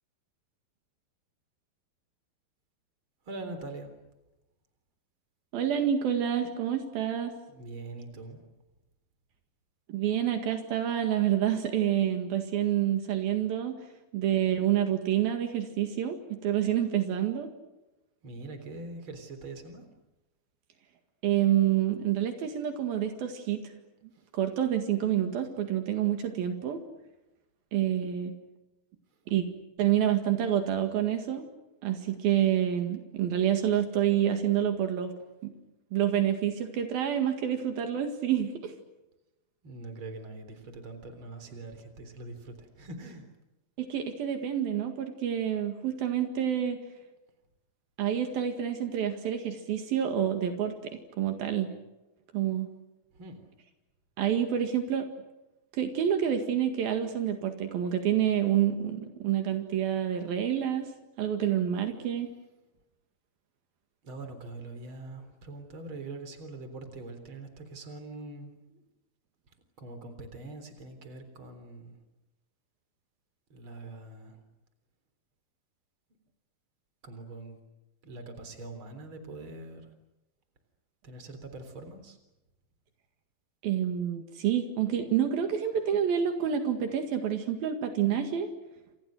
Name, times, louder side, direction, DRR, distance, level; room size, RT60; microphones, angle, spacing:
voice 1, 3.2-3.9 7.5-8.4 18.2-19.8 24.1-24.3 39.6-43.3 53.1-53.4 64.0-68.8 69.8-72.0 73.5-74.4 77.0-77.6 78.0-79.9 81.0-82.2, right 2 dB, 35° right, 8 dB, 4.2 m, -43 dB
voice 2, 5.5-7.3 9.9-13.8 14.1-17.5 21.2-23.6 24.3-26.8 27.7-28.3 29.3-29.5 29.8-31.5 31.8-35.1 35.4-35.5 35.9-38.8 43.8-46.8 48.0-51.7 52.3-52.7 54.2-55.1 55.7-60.9 61.2-62.3 83.6-88.5, right 10 dB, 75° right, 6 dB, 3.7 m, -28 dB
29.0 x 27.5 x 6.5 m, 0.99 s
omnidirectional pair, 4.3 m